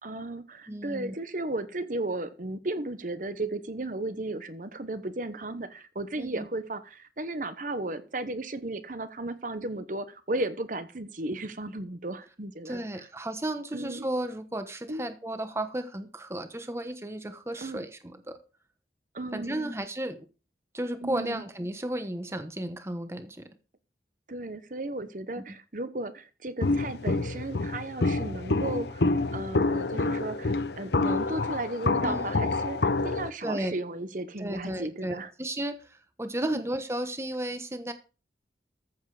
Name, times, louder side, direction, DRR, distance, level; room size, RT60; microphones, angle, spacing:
voice 1, 0.0-13.1 13.7-14.1 14.9-15.0 17.6-17.9 19.1-19.6 21.0-21.4 24.3-35.3 36.4-36.6, right 2 dB, 50° right, 12 dB, 1.0 m, -35 dB
voice 2, 0.7-1.1 6.2-6.5 12.6-18.4 19.3-20.3 20.7-23.5 25.4-25.5 32.0-32.3 33.4-33.7 34.4-37.9, right 1 dB, 15° right, 9 dB, 1.1 m, -34 dB
Walk footsteps, 26.6-33.3, left 3 dB, 75° left, 0.8 m, -27 dB
14.5 x 7.3 x 4.9 m, 0.34 s
head